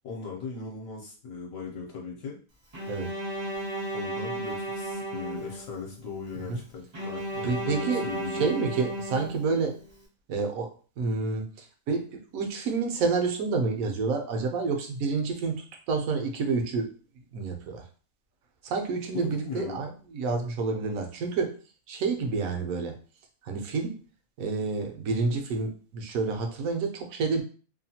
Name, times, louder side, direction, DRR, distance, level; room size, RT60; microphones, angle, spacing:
voice 1, 0.0-2.4 3.9-8.5 19.1-19.8, left 4 dB, 70° left, -2 dB, 1.1 m, -38 dB
Bowed string instrument, 2.7-5.9 6.9-9.9, right 1 dB, 35° right, 0.4 m, -34 dB
voice 2, 7.4-8.1 8.4-9.8 10.3-16.9 17.3-17.8 18.6-21.6 21.9-22.9 23.4-24.0 24.4-27.4, right 4 dB, 75° right, 4 dB, 1.0 m, -29 dB
2.8 x 2.2 x 2.7 m, 0.38 s
omnidirectional pair, 1.5 m